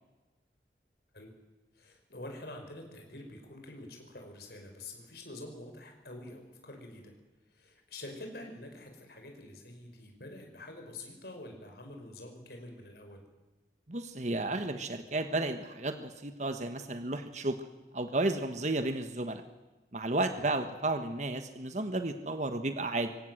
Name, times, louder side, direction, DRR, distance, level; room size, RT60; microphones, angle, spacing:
voice 1, 1.7-7.1 7.5-13.2 20.4-20.5, left 2 dB, 60° left, 3 dB, 5.1 m, -47 dB
voice 2, 13.9-17.6 17.9-19.4 19.9-23.1, right 2 dB, 40° right, 8 dB, 1.3 m, -32 dB
24.0 x 18.0 x 7.7 m, 1.1 s
head